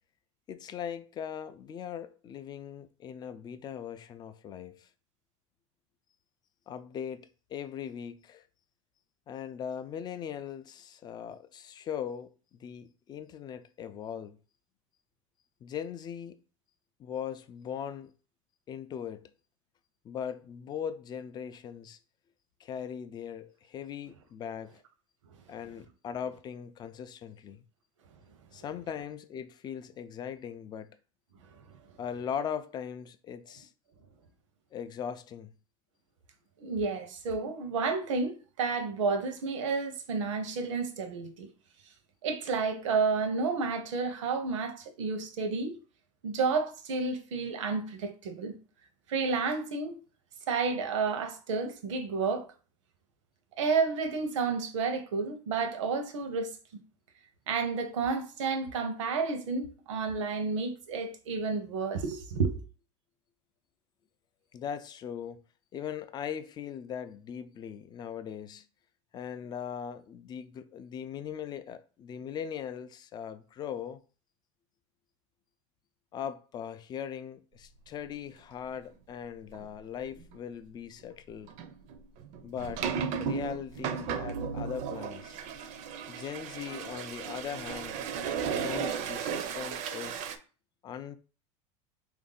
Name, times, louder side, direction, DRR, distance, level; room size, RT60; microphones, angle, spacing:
voice 1, 0.5-4.9 6.7-8.5 9.3-14.4 15.6-16.4 17.0-18.1 18.7-19.3 20.0-22.0 22.6-24.8 25.5-27.6 28.5-30.9 32.0-33.7 34.7-35.5 64.5-65.4 65.7-68.7 69.1-74.0 76.1-81.5 82.4-82.9 83.2-85.4 86.1-88.1 88.5-90.3 90.8-91.2, left 8 dB, 25° left, 0.4 m, -39 dB
voice 2, 36.6-41.5 42.2-45.8 46.2-48.6 49.1-50.0 50.5-52.5 53.6-56.8 57.5-62.6, right 4 dB, 90° right, 0.8 m, -31 dB
sound 1, 79.5-79.7 80.1-80.4 81.5-90.4, right 7 dB, 50° right, 0.5 m, -35 dB
3.4 x 2.6 x 3.8 m
supercardioid pair, 120°, 15 cm